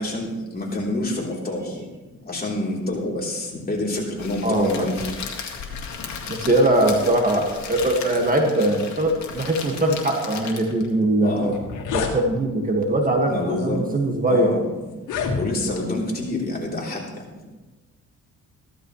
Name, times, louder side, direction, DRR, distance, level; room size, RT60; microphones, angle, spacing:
voice 1, 0.0-1.8 2.3-5.0 9.7-9.9 11.2-11.6 13.3-13.8 14.3-14.6 15.3-17.0, left 2 dB, 30° left, -3 dB, 3.5 m, -27 dB
Crackle, 4.2-10.9, left 6 dB, 65° left, 2.1 m, -35 dB
voice 2, 4.4-4.9 6.3-11.5 11.9-14.5, right 1 dB, 30° right, 2 dB, 1.8 m, -21 dB
sound 1, 11.0-11.1 11.4-12.2 13.0-13.3 14.0-14.1 14.9-15.8, left 5 dB, 85° left, 1.8 m, -28 dB
15.0 x 12.5 x 3.2 m, 1.2 s
cardioid pair, 90°, 30 cm